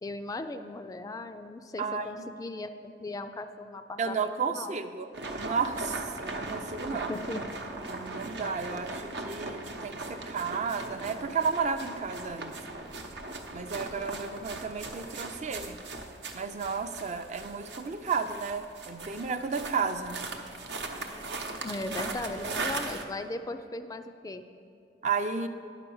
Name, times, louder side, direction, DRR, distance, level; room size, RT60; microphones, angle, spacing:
voice 1, 0.0-4.8 6.9-7.4 21.1-24.4, left 2 dB, 20° left, 9 dB, 0.3 m, -38 dB
voice 2, 4.0-5.1 5.3-7.1 7.9-12.5 13.5-15.8 16.3-20.2 25.0-25.5, right 5 dB, 40° right, 8 dB, 0.5 m, -32 dB
sound 1, 5.1-23.0, right 2 dB, 75° right, 0.9 m, -39 dB
10.0 x 5.9 x 7.0 m, 2.6 s
head